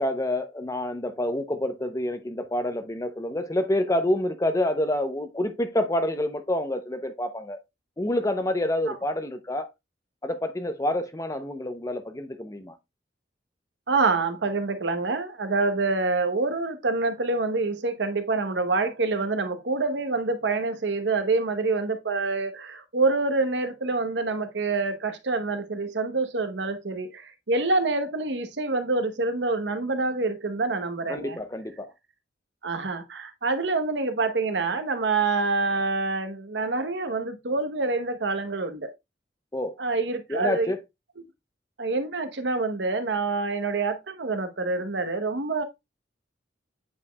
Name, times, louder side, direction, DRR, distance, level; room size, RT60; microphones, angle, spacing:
voice 1, 0.0-7.6 8.0-9.7 10.2-12.7 31.1-31.9 39.5-39.8 40.3-40.8, left 1 dB, 20° left, 0.6 m, -27 dB
voice 2, 13.9-31.4 32.6-38.9 39.8-40.7 41.8-45.6, right 3 dB, 80° right, 0.9 m, -26 dB
8.3 x 5.0 x 2.2 m
head